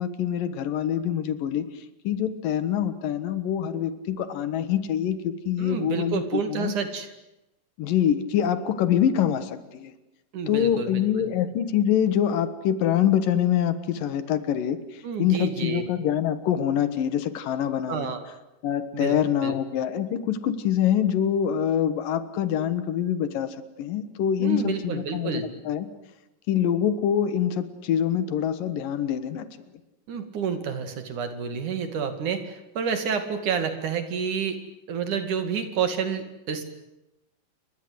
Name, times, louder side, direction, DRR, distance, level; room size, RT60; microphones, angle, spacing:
voice 1, 0.0-6.7 7.8-9.9 10.5-18.2 18.6-25.9 26.5-29.5, left 9 dB, 90° left, 12 dB, 3.2 m, -25 dB
voice 2, 5.6-7.1 10.3-11.3 15.0-15.8 17.9-18.2 18.9-19.2 19.4-19.5 24.4-25.5 30.1-34.6 34.9-36.6, right 6 dB, 65° right, 8 dB, 3.8 m, -29 dB
29.5 x 23.5 x 8.1 m, 0.93 s
omnidirectional pair, 3.8 m